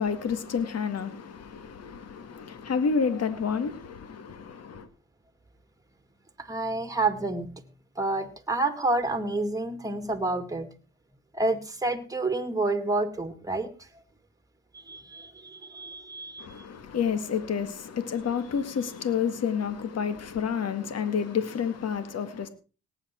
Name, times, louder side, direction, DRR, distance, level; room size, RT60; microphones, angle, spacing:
voice 1, 0.0-4.9 16.4-22.5, left 6 dB, 55° left, 1.9 m, -29 dB
voice 2, 6.4-7.6 8.0-10.7 11.3-13.9 14.7-16.5, right 2 dB, 10° right, 2.2 m, -29 dB
18.0 x 8.9 x 4.4 m
cardioid pair, 90°, 30 cm